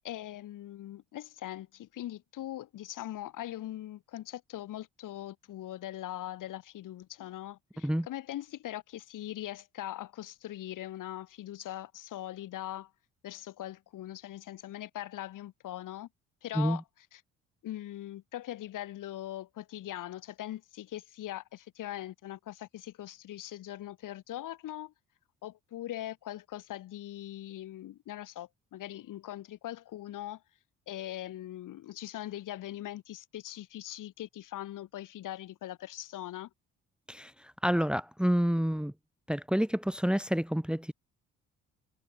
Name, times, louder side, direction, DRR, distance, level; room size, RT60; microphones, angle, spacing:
voice 1, 0.0-12.9 13.2-16.1 16.4-16.8 17.1-17.2 17.6-24.9 25.4-30.4 30.9-36.5, left 13 dB, 70° left, 7.8 m, -41 dB
voice 2, 37.1-38.9 39.3-40.9, equal, 5° right, 2.0 m, -29 dB
hypercardioid pair, 50°, 33 cm